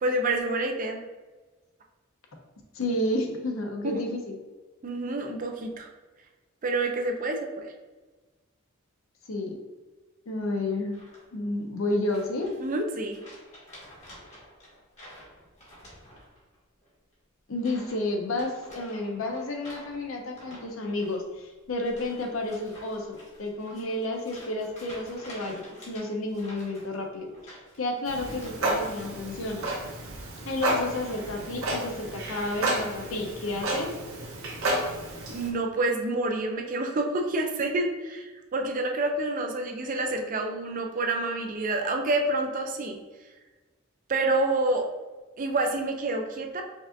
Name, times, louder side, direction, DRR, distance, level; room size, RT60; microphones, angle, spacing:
voice 1, 0.0-1.0 3.8-4.0 4.8-5.9 6.6-7.7 12.6-13.2 34.7-34.9 35.3-43.0 44.1-44.9 45.4-46.6, right 2 dB, 40° right, 3 dB, 0.4 m, -28 dB
voice 2, 2.7-4.4 9.3-9.6 10.3-11.0 11.3-12.5 17.5-29.7 30.4-33.9, left 2 dB, 70° left, 2 dB, 0.7 m, -31 dB
sound 1, 10.9-11.5 12.1-12.8 13.1-16.6 16.8-17.1 17.6-18.0 18.3-28.8 29.1-29.6, equal, 30° left, 1.4 m, -49 dB
Clock, 28.1-35.5, right 1 dB, 70° right, 0.9 m, -31 dB
5.2 x 2.5 x 2.6 m, 1.3 s
head